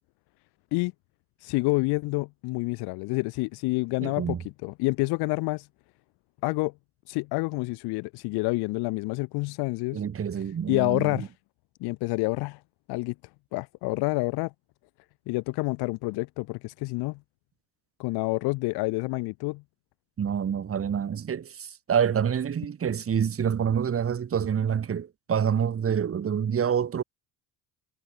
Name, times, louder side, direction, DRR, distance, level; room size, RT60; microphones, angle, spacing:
voice 1, 1.4-4.4 4.6-5.7 6.4-6.7 7.1-10.0 10.7-11.3 11.8-12.6 12.9-13.1 13.5-14.5 15.3-17.2 18.0-19.6, left 25 dB, 75° left, 2.1 m, -28 dB
voice 2, 4.0-4.4 9.9-11.3 20.2-27.0, right 8 dB, 35° right, 4.8 m, -27 dB
supercardioid pair, 110°, 39 cm